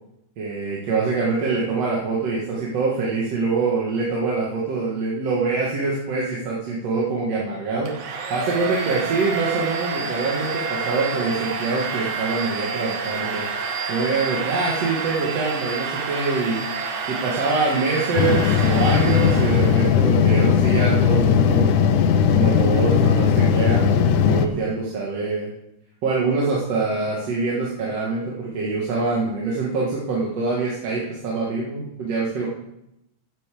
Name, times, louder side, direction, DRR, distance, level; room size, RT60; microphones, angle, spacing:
voice 1, 0.4-7.9 8.3-13.5 13.9-16.6 17.1-21.8 22.3-25.5 26.0-32.5, right 4 dB, 60° right, -4 dB, 2.7 m, -24 dB
Domestic sounds home sounds, 7.9-20.0, right 4 dB, 75° right, 2.7 m, -29 dB
sound 1, 18.2-24.5, left 7 dB, 85° left, 2.2 m, -18 dB
8.5 x 8.4 x 7.4 m, 0.84 s
omnidirectional pair, 3.5 m